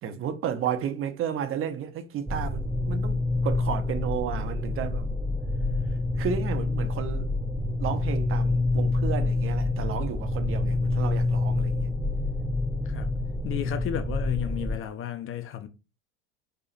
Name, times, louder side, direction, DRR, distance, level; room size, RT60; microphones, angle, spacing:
voice 1, 0.0-5.1 6.2-7.3 7.8-11.9, right 8 dB, 35° right, 0.9 m, -32 dB
sound 1, 2.3-14.8, left 2 dB, 5° right, 0.6 m, -27 dB
voice 2, 13.4-15.7, left 11 dB, 35° left, 0.7 m, -33 dB
4.8 x 4.4 x 2.5 m
hypercardioid pair, 85°, 36 cm